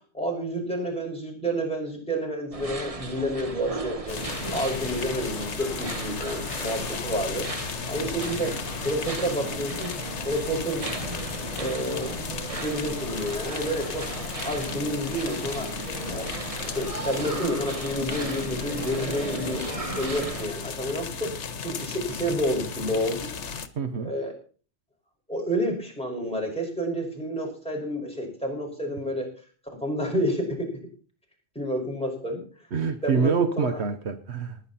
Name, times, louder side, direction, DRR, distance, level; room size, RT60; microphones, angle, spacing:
voice 1, 0.1-9.9 10.2-10.9 11.6-12.1 12.6-14.1 14.4-15.7 16.1-16.3 16.6-21.3 21.6-23.3 23.9-24.3 25.3-29.3 29.7-30.7 31.6-32.4 33.0-33.8, equal, 5° left, -1 dB, 5.4 m, -29 dB
sound 1, 2.5-20.5, right 2 dB, 30° right, 1.3 m, -35 dB
sound 2, 4.1-23.7, left 6 dB, 75° left, 1.4 m, -35 dB
voice 2, 23.8-24.1 32.7-34.6, right 5 dB, 70° right, 9 dB, 1.3 m, -26 dB
20.0 x 9.9 x 4.2 m, 0.40 s
omnidirectional pair, 1.2 m